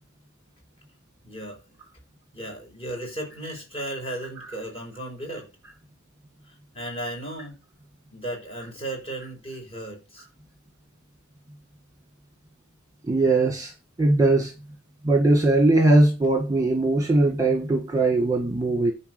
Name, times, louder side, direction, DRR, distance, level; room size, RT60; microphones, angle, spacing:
voice 1, 1.2-1.6 2.3-5.5 6.5-7.6 8.1-10.3, right 1 dB, 25° left, 5.5 m, -35 dB
voice 2, 13.0-13.7 14.0-14.5 15.0-18.9, right 2 dB, 15° right, 1.7 m, -20 dB
10.5 x 4.6 x 7.9 m
head